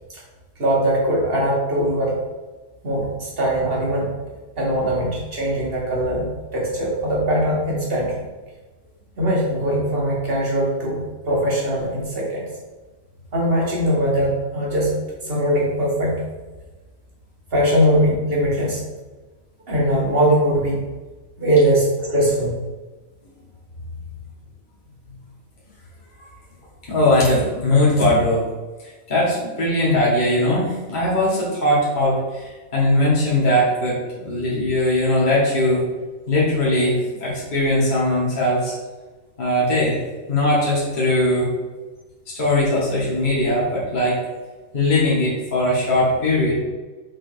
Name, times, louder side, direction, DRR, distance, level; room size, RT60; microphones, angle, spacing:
voice 1, 0.6-2.2 2.8-4.1 4.6-8.2 9.2-12.5 13.3-14.9 15.2-16.2 17.5-18.8 19.7-20.8 21.4-22.5, right 1 dB, 45° right, -4 dB, 2.0 m, -21 dB
voice 2, 26.9-28.5 29.1-35.8 36.3-38.7 39.4-40.0 40.3-41.5 42.3-44.2 44.7-46.6, left 1 dB, 35° left, -7 dB, 1.9 m, -20 dB
6.3 x 3.7 x 5.2 m, 1.2 s
omnidirectional pair, 1.4 m